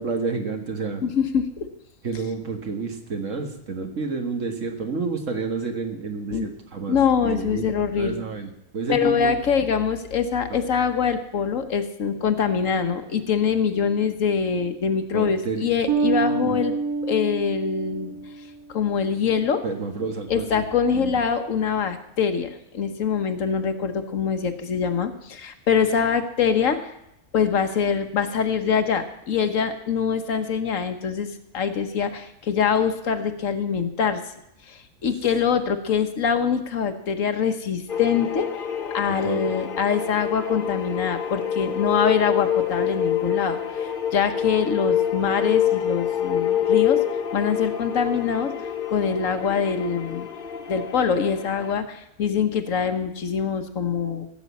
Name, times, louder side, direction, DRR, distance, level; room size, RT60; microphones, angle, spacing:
voice 1, 0.0-1.0 2.0-7.7 8.0-9.6 10.5-10.6 15.1-15.7 16.1-16.6 19.6-20.6 20.9-21.2 39.1-39.4, right 4 dB, 55° right, 5 dB, 1.8 m, -30 dB
voice 2, 1.0-1.7 6.3-6.5 6.9-8.2 8.9-16.7 17.0-18.2 18.7-19.6 20.3-26.8 27.3-34.2 34.7-38.5 38.9-47.0 47.3-48.5 48.9-50.3 50.7-54.3, left 6 dB, 60° left, 9 dB, 1.2 m, -24 dB
Bass guitar, 15.9-18.5, right 5 dB, 90° right, 1.6 m, -26 dB
sound 1, 37.9-51.7, left 9 dB, 40° left, 1.0 m, -27 dB
15.5 x 6.3 x 8.3 m, 0.82 s
omnidirectional pair, 1.6 m